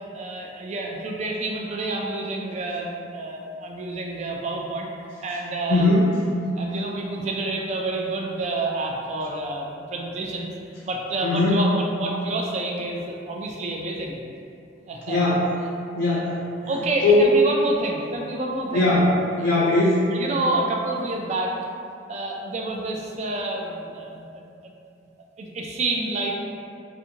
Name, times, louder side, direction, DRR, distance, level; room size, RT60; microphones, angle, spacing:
voice 1, 0.1-4.9 5.2-5.9 6.5-10.5 10.8-14.2 14.9-15.2 16.6-19.0 19.4-19.5 20.1-21.5 22.1-24.7 25.4-26.3, right 2 dB, 40° right, 0 dB, 0.3 m, -28 dB
voice 2, 5.7-6.1 11.2-11.6 15.1-15.4 16.0-16.3 17.0-17.3 18.7-20.0, left 2 dB, 65° left, -7 dB, 0.5 m, -19 dB
2.5 x 2.5 x 2.8 m, 2.5 s
head